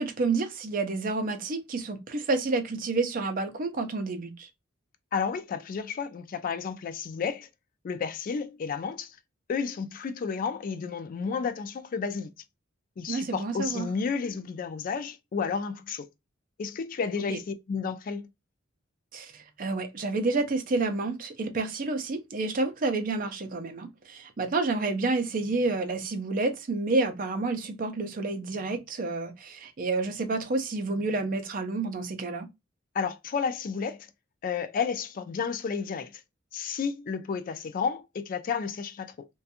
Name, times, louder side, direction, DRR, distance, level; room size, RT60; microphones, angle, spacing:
voice 1, 0.0-4.5 13.1-13.9 17.3-17.4 19.1-32.5, right 3 dB, 45° right, 0.5 m, -29 dB
voice 2, 5.1-7.5 7.8-9.2 9.5-12.3 13.0-16.1 16.6-18.3 32.9-34.0 34.4-36.2 36.5-39.3, left 6 dB, 45° left, 0.3 m, -31 dB
2.5 x 2.2 x 2.7 m
head